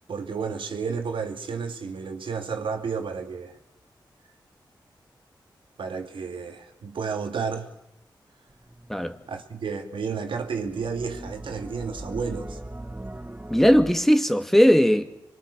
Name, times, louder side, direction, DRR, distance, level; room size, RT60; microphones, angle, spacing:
voice 1, 0.1-3.6 5.8-7.7 9.3-12.6, right 5 dB, 80° right, 2.8 m, -31 dB
sound 1, 8.5-9.3 10.5-13.9, right 1 dB, 20° right, 1.9 m, -39 dB
voice 2, 13.5-15.1, equal, 5° left, 2.3 m, -18 dB
26.5 x 23.0 x 6.9 m
cardioid pair, 55°, 8 cm